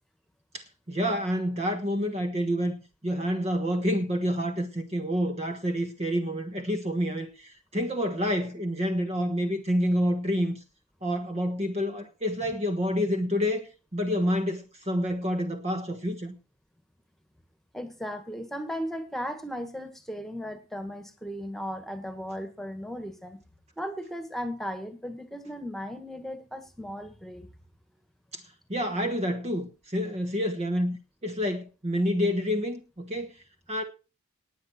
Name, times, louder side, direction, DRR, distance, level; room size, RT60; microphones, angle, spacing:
voice 1, 0.5-10.6 11.0-16.3 28.3-28.4 28.7-31.0 31.2-33.3 33.7-33.8, equal, 30° right, 1.3 m, -28 dB
voice 2, 17.7-23.4 23.8-27.5, equal, ahead, 1.8 m, -36 dB
19.5 x 7.8 x 4.5 m
head